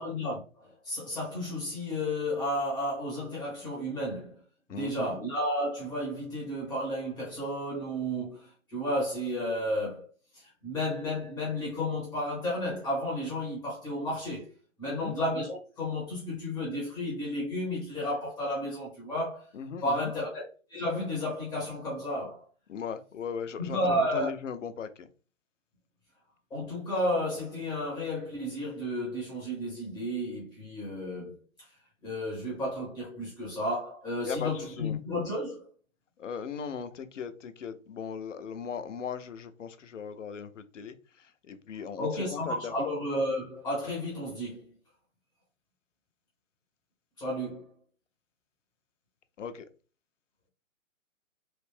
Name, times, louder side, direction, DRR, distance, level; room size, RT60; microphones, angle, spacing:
voice 1, 0.0-4.4 4.7-14.5 14.8-19.5 19.8-22.4 23.6-24.3 26.5-31.4 32.0-35.6 42.0-44.6 47.2-47.7, left 1 dB, 5° left, 0.6 m, -32 dB
voice 2, 4.7-5.2 14.9-15.1 19.5-20.1 22.7-25.1 34.2-35.0 36.2-42.9 49.4-49.7, left 6 dB, 65° left, 0.6 m, -38 dB
3.2 x 2.6 x 3.3 m
figure-of-eight pair, 130°, 41 cm